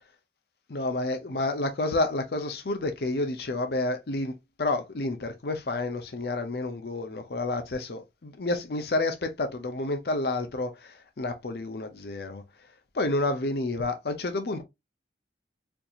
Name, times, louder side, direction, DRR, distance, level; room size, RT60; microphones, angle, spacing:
voice 1, 0.7-4.3 4.6-12.4 12.9-14.6, left 2 dB, 60° left, 0.6 m, -29 dB
4.4 x 2.7 x 2.4 m
head